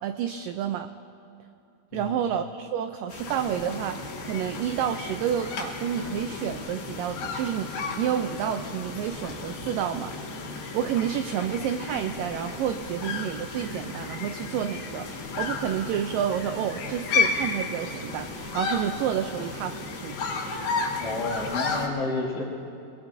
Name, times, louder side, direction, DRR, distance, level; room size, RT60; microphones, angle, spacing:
voice 1, 0.0-0.9 1.9-10.2 10.7-20.2, right 9 dB, 85° right, 8 dB, 1.9 m, -29 dB
voice 2, 1.9-2.3 21.0-22.4, left 2 dB, 55° left, -3 dB, 1.9 m, -30 dB
sound 1, 3.1-21.9, left 4 dB, 75° left, 3.8 m, -33 dB
25.5 x 21.0 x 2.6 m, 2.6 s
omnidirectional pair, 4.5 m